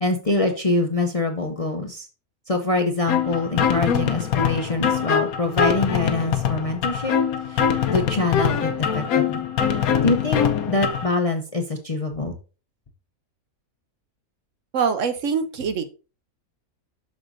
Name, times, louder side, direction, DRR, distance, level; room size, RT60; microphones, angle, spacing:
voice 1, 0.0-2.1 2.5-7.2 7.5-7.6 7.9-9.5 10.0-12.3, left 2 dB, 35° left, 4 dB, 0.6 m, -24 dB
sound 1, 3.1-11.1, left 7 dB, 80° left, 1.2 m, -23 dB
voice 2, 14.7-15.8, right 6 dB, 65° right, 9 dB, 1.0 m, -23 dB
7.7 x 6.4 x 2.6 m, 0.33 s
omnidirectional pair, 1.5 m